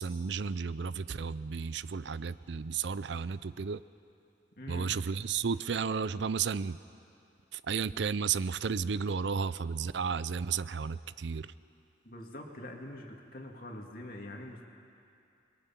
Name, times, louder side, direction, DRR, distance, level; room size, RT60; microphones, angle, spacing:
voice 1, 0.0-3.8 4.7-6.8 7.5-11.5, right 6 dB, 70° right, 16 dB, 0.5 m, -33 dB
voice 2, 4.6-5.0 12.0-14.7, left 1 dB, 50° left, 1 dB, 2.4 m, -44 dB
29.5 x 23.0 x 5.9 m, 2.6 s
head